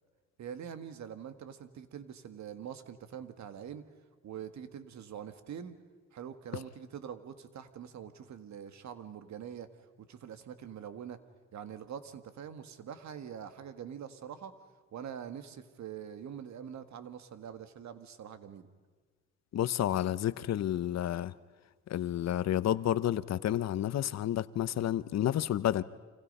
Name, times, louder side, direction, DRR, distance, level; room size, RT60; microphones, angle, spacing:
voice 1, 0.4-3.9 4.2-5.8 6.1-9.7 10.0-11.2 11.5-14.6 14.9-18.7, right 8 dB, 65° right, 1.8 m, -44 dB
voice 2, 19.5-21.3 21.9-25.8, left 11 dB, 60° left, 0.8 m, -30 dB
29.5 x 26.0 x 5.5 m
cardioid pair, 90°, 30 cm